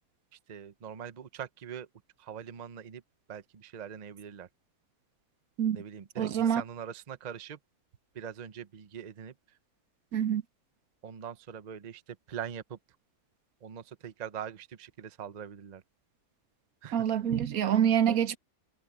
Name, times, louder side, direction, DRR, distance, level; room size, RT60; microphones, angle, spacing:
voice 1, 0.5-1.9 2.2-3.0 3.3-4.5 5.7-7.6 8.1-9.3 11.0-12.8 13.6-15.8 16.8-17.0, right 8 dB, 35° right, 0.7 m, -42 dB
voice 2, 6.2-6.6 10.1-10.4 16.9-18.4, right 9 dB, 70° right, 1.3 m, -26 dB
omnidirectional pair, 1.6 m